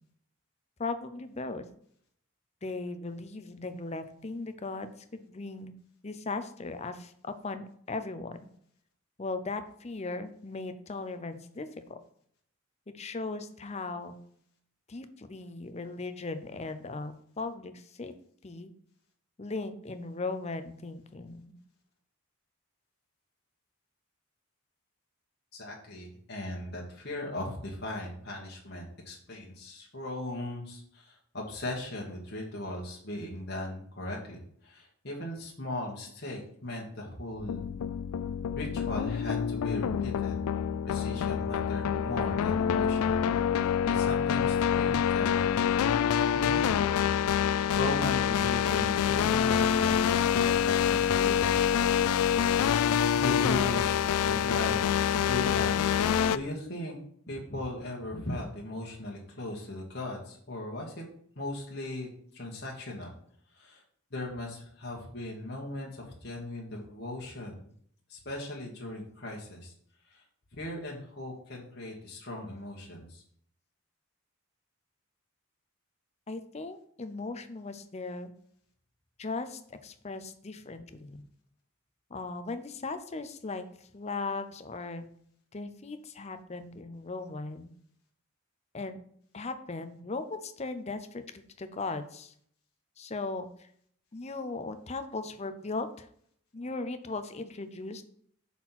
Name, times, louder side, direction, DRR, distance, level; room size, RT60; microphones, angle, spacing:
voice 1, 0.8-1.7 2.6-5.7 6.0-8.5 9.2-12.0 12.9-14.2 14.9-18.1 18.4-18.7 19.4-21.6 76.3-78.3 79.2-81.2 82.1-85.1 85.5-87.7 88.7-89.0 89.3-92.3 93.0-93.7 94.1-96.1 96.5-98.0, left 3 dB, 30° left, 10 dB, 0.6 m, -38 dB
voice 2, 25.5-37.6 38.5-40.4 40.8-43.2 43.5-45.5 46.1-46.8 47.7-49.9 50.3-51.7 52.9-55.7 56.3-57.0 57.3-61.0 61.3-63.1 63.5-63.8 64.1-67.6 68.1-69.7 70.0-70.2 70.5-73.2, left 1 dB, 50° left, -2 dB, 1.4 m, -38 dB
sound 1, 37.4-56.4, left 8 dB, 90° left, 0.3 m, -26 dB
6.2 x 4.3 x 5.8 m, 0.63 s
head